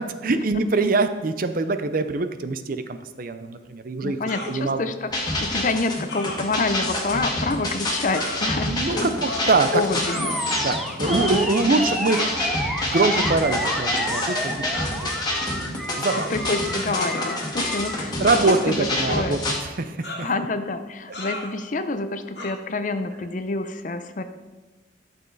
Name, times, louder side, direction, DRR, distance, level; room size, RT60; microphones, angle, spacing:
voice 1, 0.0-4.2 4.5-4.8 8.7-9.8 10.6-15.0 15.7-16.3 18.2-20.3, right 3 dB, 45° right, 10 dB, 0.6 m, -24 dB
voice 2, 4.0-9.1 9.7-10.6 11.6-11.9 16.3-18.4 18.7-19.4 20.2-24.2, left 3 dB, 40° left, 9 dB, 0.6 m, -28 dB
sound 1, 4.3-4.6 6.1-6.4 7.1-7.2 8.1-8.4 9.3-9.5 10.0-10.7 11.0-11.5 12.1-12.3 13.6-13.8 14.7-15.0 16.1-16.3 17.2-17.7 18.2-18.9 20.0-20.4 21.1-21.5 22.3-22.5, left 1 dB, 60° left, 1.8 m, -34 dB
sound 2, 5.1-19.6, left 1 dB, 20° left, 1.7 m, -28 dB
Animal, 10.1-18.0, equal, ahead, 0.8 m, -30 dB
12.0 x 6.9 x 4.0 m, 1.2 s
head